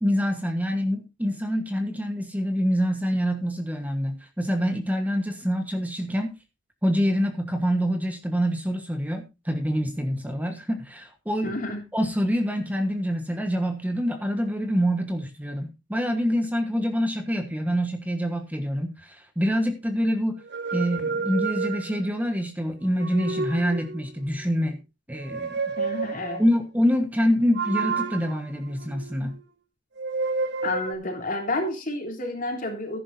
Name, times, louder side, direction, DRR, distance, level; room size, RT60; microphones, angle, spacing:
voice 1, 0.0-6.3 6.8-11.6 11.9-20.4 20.7-24.8 25.1-25.6 26.4-29.4, equal, 10° right, 6 dB, 1.3 m, -26 dB
voice 2, 11.4-11.8 25.8-26.4 30.6-33.0, left 2 dB, 45° left, 4 dB, 3.3 m, -30 dB
sound 1, 20.4-22.2 22.8-24.2 25.1-26.5 27.6-29.4 30.0-30.9, right 4 dB, 60° right, 1.3 m, -30 dB
14.5 x 11.0 x 2.7 m, 0.26 s
head